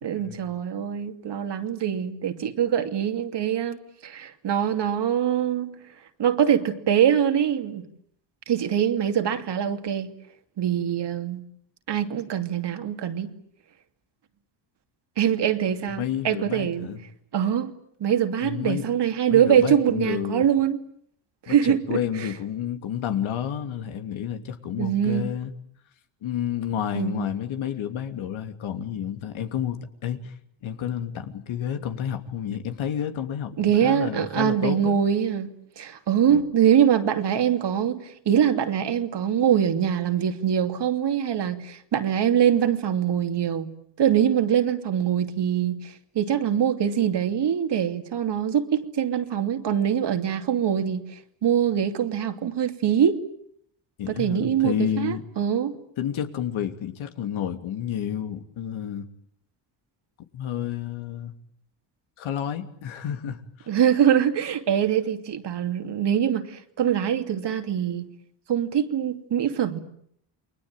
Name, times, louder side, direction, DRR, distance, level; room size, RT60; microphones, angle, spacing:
voice 1, 0.0-3.8 4.0-5.8 6.2-7.8 8.5-10.1 10.6-11.4 11.9-13.3 15.2-16.9 17.3-17.7 18.0-20.8 21.4-22.3 24.8-25.3 26.9-27.3 33.6-35.5 35.8-43.7 44.0-53.2 54.1-55.8 63.7-68.1 68.5-69.8, right 9 dB, 55° right, 2.8 m, -23 dB
voice 2, 16.0-17.0 18.4-18.8 19.3-20.4 21.5-25.5 26.2-30.3 30.6-35.0 54.0-55.2 56.0-59.0 60.3-61.3 62.2-63.7, left 9 dB, 70° left, 3.0 m, -30 dB
29.0 x 21.5 x 9.1 m
cardioid pair, 85°, 49 cm